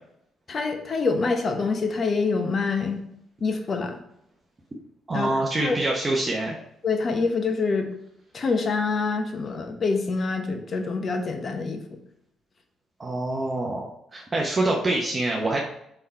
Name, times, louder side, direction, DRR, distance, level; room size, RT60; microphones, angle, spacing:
voice 1, 0.5-3.0 3.4-4.0 5.1-5.4 5.6-5.8 6.8-7.9 8.3-12.0, left 4 dB, 45° left, 5 dB, 1.1 m, -26 dB
voice 2, 5.1-6.6 13.0-15.6, right 2 dB, 25° right, -2 dB, 1.0 m, -25 dB
5.6 x 4.6 x 4.4 m, 0.75 s
cardioid pair, 90°, 0 cm